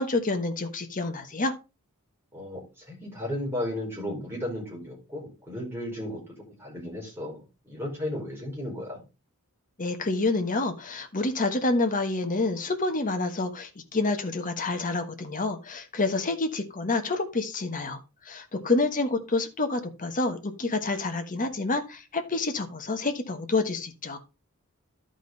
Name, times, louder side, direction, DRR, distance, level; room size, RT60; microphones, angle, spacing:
voice 1, 0.0-1.5 9.8-18.0 18.2-24.2, left 3 dB, 40° left, 7 dB, 1.3 m, -28 dB
voice 2, 2.3-9.0 18.5-18.7, left 1 dB, 10° right, -3 dB, 5.0 m, -35 dB
12.0 x 5.1 x 4.0 m, 0.28 s
head